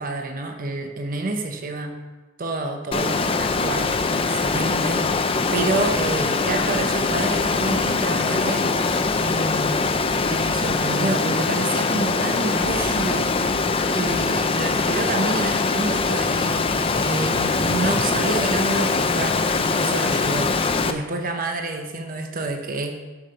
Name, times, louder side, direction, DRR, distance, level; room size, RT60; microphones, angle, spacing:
voice 1, 0.0-2.0 2.4-5.1 5.5-8.8 9.2-9.9 10.3-13.4 13.9-16.7 17.0-23.0, right 2 dB, 45° right, 4 dB, 0.8 m, -28 dB
Water, 2.9-20.9, left 4 dB, 25° left, 0.5 m, -22 dB
8.3 x 5.9 x 6.6 m, 1.2 s
head